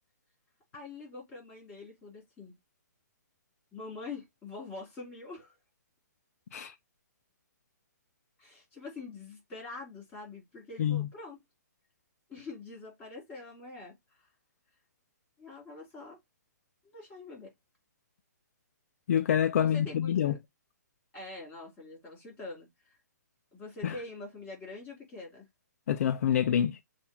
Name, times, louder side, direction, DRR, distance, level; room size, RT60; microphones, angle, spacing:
voice 1, 0.7-2.6 3.7-5.6 8.4-11.4 12.3-14.3 15.4-16.2 16.9-17.5 19.6-20.4 21.1-23.0 23.5-25.5, left 3 dB, 15° left, 3.5 m, -45 dB
voice 2, 19.1-20.3 23.8-23.9 25.9-26.8, left 9 dB, 50° left, 0.4 m, -27 dB
6.8 x 2.4 x 2.9 m
hypercardioid pair, 155°, 10 cm